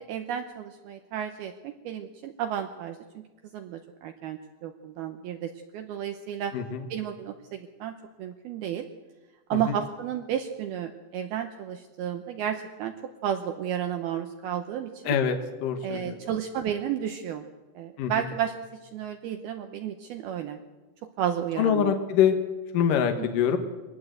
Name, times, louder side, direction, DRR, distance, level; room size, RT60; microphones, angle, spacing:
voice 1, 0.0-3.2 3.5-6.5 6.9-8.9 9.5-12.9 13.2-15.2 15.8-17.4 17.8-18.5 18.8-20.6 21.2-22.0 23.2-23.3, right 9 dB, 75° right, 6 dB, 2.3 m, -32 dB
voice 2, 6.5-6.9 9.5-9.8 15.0-16.2 18.0-18.2 21.6-22.3 22.7-23.6, left 8 dB, 65° left, 6 dB, 2.3 m, -25 dB
23.0 x 18.5 x 7.9 m, 1.2 s
omnidirectional pair, 5.4 m